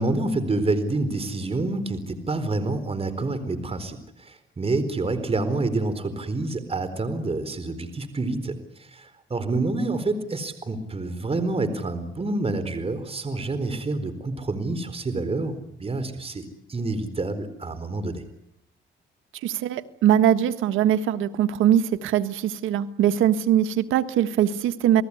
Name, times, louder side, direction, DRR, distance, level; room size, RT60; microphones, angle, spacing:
voice 1, 0.0-18.2, right 2 dB, 30° right, 11 dB, 4.2 m, -28 dB
voice 2, 19.4-25.0, right 10 dB, 90° right, 11 dB, 1.6 m, -21 dB
30.0 x 20.0 x 9.9 m, 0.76 s
cardioid pair, 90°, 20 cm